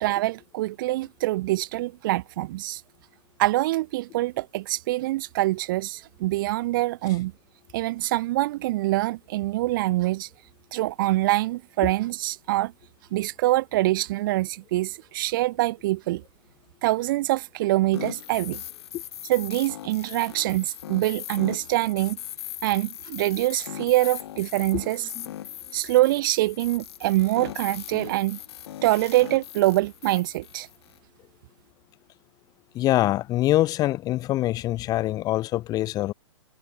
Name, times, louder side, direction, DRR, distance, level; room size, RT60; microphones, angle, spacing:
voice 1, 0.0-2.8 3.4-7.3 7.7-10.3 10.7-12.7 13.1-16.2 16.8-18.6 19.3-22.2 22.6-25.1 25.7-28.4 28.8-30.7, right 17 dB, 45° right, 0.6 m, -24 dB
sound 1, 17.9-31.0, left 12 dB, 60° left, 3.4 m, -39 dB
voice 2, 32.7-36.1, left 15 dB, 25° left, 1.1 m, -24 dB
hypercardioid pair, 130°, 16 cm